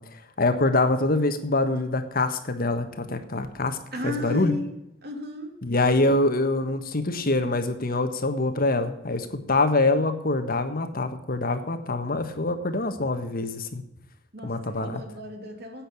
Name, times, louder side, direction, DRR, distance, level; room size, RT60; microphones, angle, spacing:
voice 1, 0.4-3.8 4.0-4.5 5.6-13.8 14.4-15.0, left 2 dB, 50° left, 9 dB, 1.4 m, -25 dB
voice 2, 3.9-4.7 5.0-5.6 14.3-15.9, left 2 dB, 55° right, 4 dB, 2.6 m, -34 dB
10.5 x 8.9 x 8.5 m, 0.85 s
head